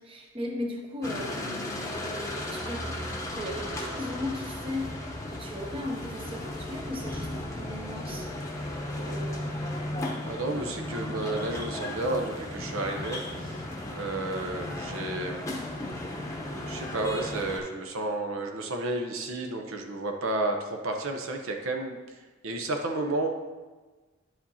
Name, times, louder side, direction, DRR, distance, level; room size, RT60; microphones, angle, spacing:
voice 1, 0.0-4.9 5.3-8.3 9.0-9.6, left 1 dB, 25° right, 1 dB, 0.7 m, -37 dB
sound 1, 1.0-17.6, left 1 dB, 15° left, 0.8 m, -35 dB
voice 2, 10.2-13.6 13.9-15.5 16.7-23.3, right 2 dB, 70° right, 4 dB, 0.7 m, -32 dB
10.0 x 5.0 x 2.8 m, 1.3 s
head